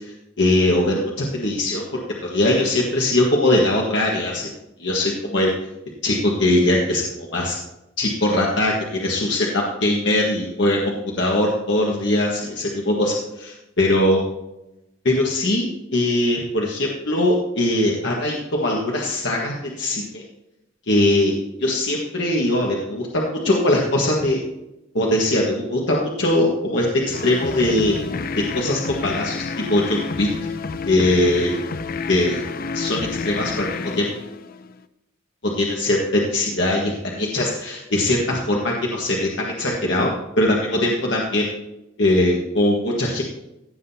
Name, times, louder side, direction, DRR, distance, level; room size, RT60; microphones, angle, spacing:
voice 1, 0.4-1.8 2.2-4.5 4.8-5.5 6.0-7.6 8.0-10.8 11.2-14.2 15.0-20.2 20.9-21.3 21.6-24.4 24.9-27.9 28.4-30.3 30.9-31.5 32.1-32.4 32.7-33.0 33.2-33.7 34.0-34.1 35.4-41.5 42.0-43.2, left 1 dB, 65° left, -2 dB, 1.5 m, -21 dB
sound 1, 27.1-34.8, left 4 dB, 50° left, 0.5 m, -29 dB
16.0 x 7.5 x 2.8 m, 0.91 s
head